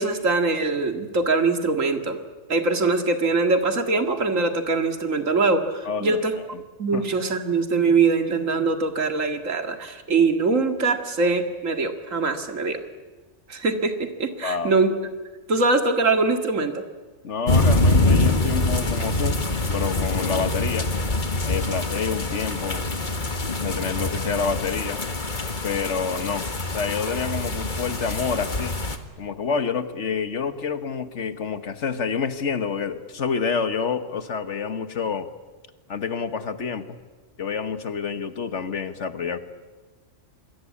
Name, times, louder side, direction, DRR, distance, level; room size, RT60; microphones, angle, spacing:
voice 1, 0.0-2.2 2.5-6.4 6.8-12.8 13.5-14.9 15.5-16.8, right 3 dB, 90° right, 6 dB, 2.4 m, -22 dB
voice 2, 5.8-6.6 6.9-7.0 14.4-14.7 17.2-20.9 21.4-22.8 23.6-25.0 25.6-26.5 26.7-28.8 29.2-35.3 35.9-37.0 37.4-39.4, left 6 dB, 65° left, 11 dB, 1.6 m, -28 dB
sound 1, 17.5-29.0, left 2 dB, 40° left, 1.8 m, -24 dB
27.0 x 21.5 x 8.5 m, 1.3 s
omnidirectional pair, 1.3 m